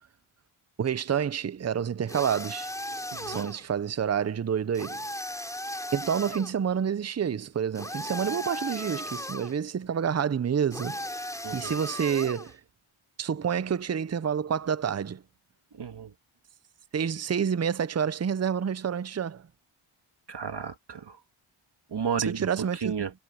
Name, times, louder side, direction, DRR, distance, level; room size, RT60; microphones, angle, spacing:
voice 1, 0.8-2.7 3.3-5.0 5.9-11.0 11.3-12.6 13.2-15.2 16.9-19.4 22.3-23.1, right 8 dB, 30° right, 0.6 m, -28 dB
sound 1, 2.1-3.7 4.7-6.5 7.8-9.6 10.7-12.5, left 1 dB, 5° left, 3.8 m, -36 dB
voice 2, 3.1-3.5 11.4-11.7 15.7-16.1 20.3-21.2 21.9-22.5 22.7-23.1, right 7 dB, 55° right, 1.8 m, -33 dB
wide cardioid pair, 90°, 50 cm